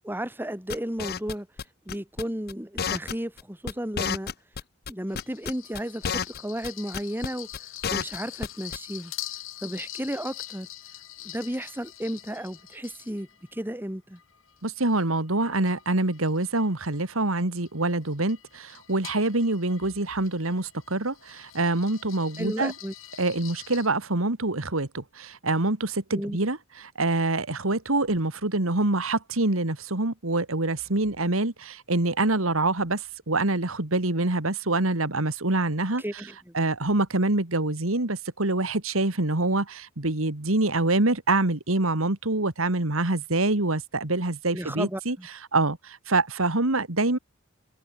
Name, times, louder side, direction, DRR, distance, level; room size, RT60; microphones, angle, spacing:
voice 1, 0.0-1.5 1.9-4.3 4.9-7.5 7.9-9.1 9.6-10.7 11.2-14.2 22.4-22.9 26.1-26.4 36.0-36.5 44.5-45.3, equal, 10° right, 3.6 m, -33 dB
sound 1, 0.7-1.6 1.9-2.2 2.5-2.6 2.8-3.4 3.7-3.8 4.0-4.9 5.2-6.4 6.6-6.7 6.9-7.3 7.5-8.5 8.7-8.8, left 7 dB, 50° left, 0.7 m, -30 dB
sound 2, 5.1-13.6 14.1-23.9, left 13 dB, 70° left, 6.1 m, -44 dB
voice 2, 14.6-22.7 23.2-36.2 36.5-45.2 45.5-47.2, right 2 dB, 85° right, 2.4 m, -25 dB
head